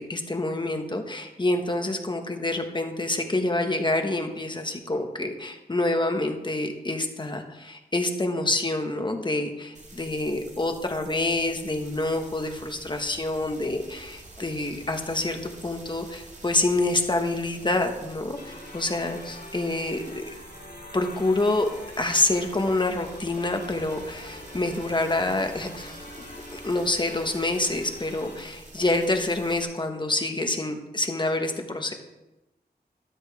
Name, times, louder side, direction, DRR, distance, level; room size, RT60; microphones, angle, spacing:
voice 1, 0.0-20.2 20.9-21.7 22.0-26.0 26.5-31.9, left 2 dB, 30° left, 4 dB, 1.5 m, -27 dB
sound 1, 9.7-29.6, right 2 dB, 45° right, 2.1 m, -47 dB
sound 2, 18.3-28.4, left 1 dB, 75° left, 3.2 m, -45 dB
13.5 x 12.5 x 3.6 m, 0.99 s
wide cardioid pair, 105°, 17 cm